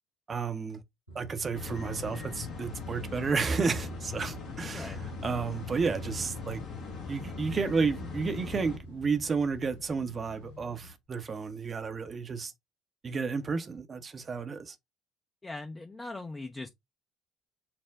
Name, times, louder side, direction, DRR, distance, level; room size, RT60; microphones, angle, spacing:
voice 1, 0.3-0.8 1.1-6.6 7.1-12.5 13.0-14.8, right 5 dB, 35° right, 0.6 m, -32 dB
sound 1, 1.1-10.9, right 2 dB, 85° left, 1.5 m, -49 dB
sound 2, 1.5-8.8, left 5 dB, 50° left, 1.1 m, -40 dB
sound 3, 2.7-10.9, left 4 dB, 70° left, 0.6 m, -51 dB
voice 2, 15.4-16.7, left 2 dB, 20° left, 0.6 m, -40 dB
5.9 x 2.1 x 3.4 m
figure-of-eight pair, 55°, 0 cm